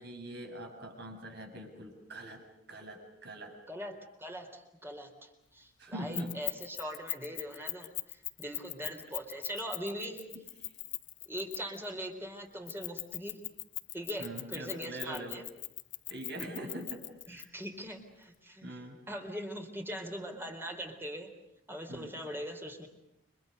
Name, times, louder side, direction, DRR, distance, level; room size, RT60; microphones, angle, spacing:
voice 1, 0.0-3.6 5.8-6.4 8.8-8.9 10.0-10.7 14.2-15.4 16.1-17.5 18.6-19.0 21.9-22.1, right 1 dB, 60° right, 3 dB, 7.5 m, -43 dB
voice 2, 3.7-10.2 11.3-13.4 13.9-15.4 17.3-18.8 19.1-21.3 21.7-22.9, equal, 10° right, 4 dB, 3.9 m, -41 dB
Keys jangling, 6.1-11.8 12.7-17.4, left 19 dB, 75° left, 1.2 m, -39 dB
30.0 x 25.5 x 6.7 m, 0.85 s
head